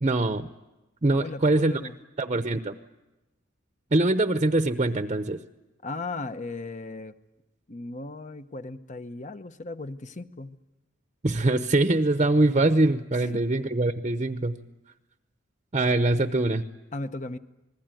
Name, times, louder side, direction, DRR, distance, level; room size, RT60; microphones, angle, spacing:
voice 1, 0.0-0.5 1.0-1.7 2.2-2.7 3.9-5.4 11.2-14.6 15.7-16.6, right 2 dB, 35° right, 9 dB, 0.8 m, -23 dB
voice 2, 1.2-2.0 5.8-7.1 7.7-10.6 16.9-17.4, left 2 dB, 40° left, 11 dB, 1.0 m, -36 dB
28.0 x 20.5 x 9.1 m, 1.0 s
head